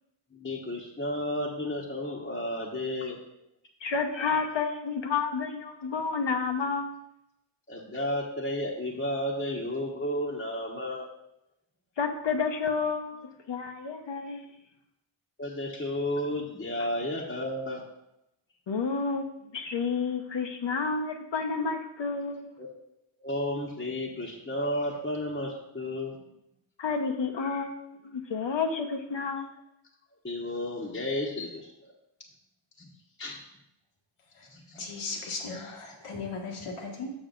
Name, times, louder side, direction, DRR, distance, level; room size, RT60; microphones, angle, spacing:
voice 1, 0.3-3.2 7.7-11.1 15.4-17.8 22.6-22.7 23.2-26.2 30.2-31.7 32.8-32.9 33.2-33.4 34.5-34.9, left 1 dB, 20° left, -3 dB, 1.2 m, -32 dB
voice 2, 3.8-7.0 12.0-13.1 13.5-14.5 16.8-16.9 18.7-22.5 26.8-27.8 28.1-29.5, left 5 dB, 60° left, 5 dB, 1.0 m, -30 dB
voice 3, 34.8-37.1, left 4 dB, 80° left, 1 dB, 1.6 m, -37 dB
7.1 x 6.2 x 3.9 m, 0.84 s
cardioid pair, 60°, 50 cm